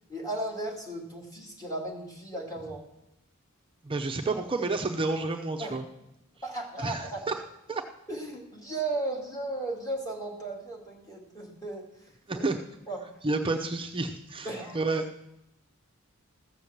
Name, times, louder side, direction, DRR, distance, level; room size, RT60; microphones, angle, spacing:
voice 1, 0.1-2.8 5.6-5.8 6.4-7.2 8.1-11.9 12.3-12.5 12.9-13.0 14.4-14.8, right 2 dB, 15° left, -1 dB, 2.5 m, -35 dB
voice 2, 3.8-5.8 6.8-7.1 7.7-7.8 12.3-12.6 13.2-14.5 14.7-15.0, right 3 dB, 25° right, 3 dB, 0.7 m, -29 dB
14.0 x 6.9 x 7.3 m, 0.85 s
head